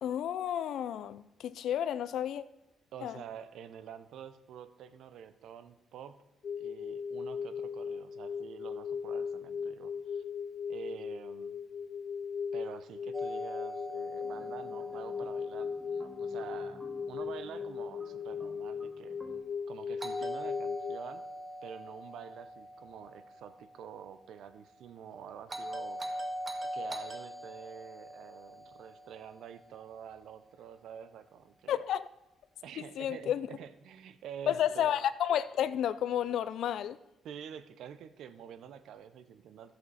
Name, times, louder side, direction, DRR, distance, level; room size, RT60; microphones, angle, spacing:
voice 1, 0.0-2.4 3.0-3.2 31.7-32.1 32.8-33.5 34.5-37.0, left 10 dB, 75° left, 0.4 m, -31 dB
voice 2, 2.9-6.2 6.6-10.2 10.7-11.5 12.5-19.2 19.7-21.2 21.6-26.3 26.7-31.8 32.6-35.0 37.2-39.7, right 8 dB, 75° right, 0.6 m, -48 dB
sound 1, 6.4-21.0, left 6 dB, 50° left, 0.8 m, -38 dB
Doorbell, 13.1-17.1 20.0-24.2 25.5-29.9, equal, 30° right, 1.4 m, -43 dB
sound 2, 14.2-19.4, right 2 dB, 15° right, 1.7 m, -54 dB
14.0 x 7.8 x 4.2 m
cardioid pair, 90°, 0 cm